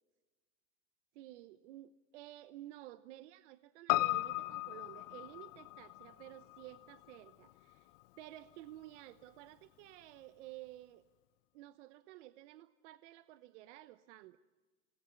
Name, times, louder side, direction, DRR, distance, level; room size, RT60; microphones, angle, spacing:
voice 1, 1.1-7.9 8.2-11.0 11.5-14.4, right 15 dB, 55° right, 13 dB, 1.0 m, -53 dB
Piano, 3.9-8.4 8.7-8.8, left 19 dB, 45° left, 0.9 m, -37 dB
26.5 x 19.5 x 9.8 m, 1.3 s
supercardioid pair, 150°, 42 cm